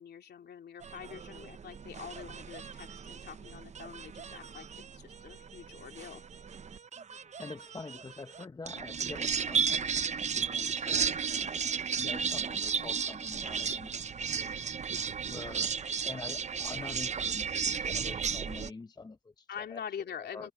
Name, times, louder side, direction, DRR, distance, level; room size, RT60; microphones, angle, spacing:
voice 1, 0.0-6.2 12.0-12.2 19.5-20.5, left 8 dB, 55° left, 3.0 m, -45 dB
sound 1, 0.8-18.7, right 6 dB, 35° right, 0.8 m, -34 dB
voice 2, 7.1-14.1 14.3-14.6 15.3-15.7 16.0-19.8 20.2-20.5, left 3 dB, 20° left, 0.9 m, -46 dB
cardioid pair, 90°, 20 cm